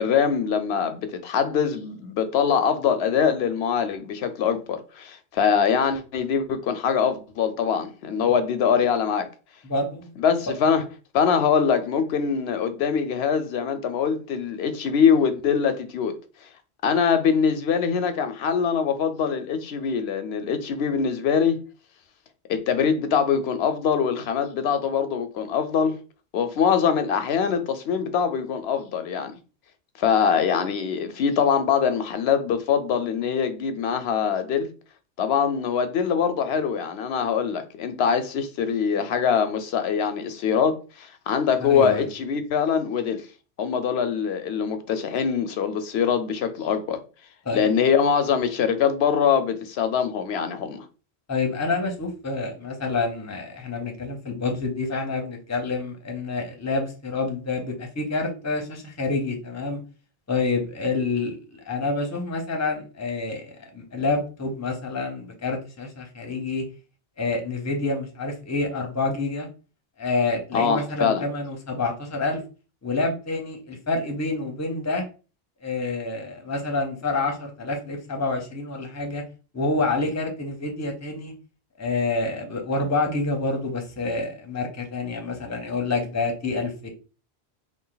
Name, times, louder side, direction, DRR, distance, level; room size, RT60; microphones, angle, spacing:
voice 1, 0.0-9.3 10.2-10.8 11.1-16.1 16.8-21.6 22.5-26.0 26.3-29.3 30.0-34.7 35.2-43.3 43.6-47.0 47.5-50.9 70.5-71.2, left 7 dB, 80° left, 0.8 m, -23 dB
voice 2, 9.6-10.1 41.6-42.1 47.4-47.7 51.3-59.8 60.3-66.6 67.2-69.5 70.0-72.4 72.8-75.1 75.6-79.2 79.5-81.3 81.8-86.9, left 3 dB, 20° left, 0.6 m, -28 dB
3.3 x 2.5 x 3.8 m
omnidirectional pair, 1.0 m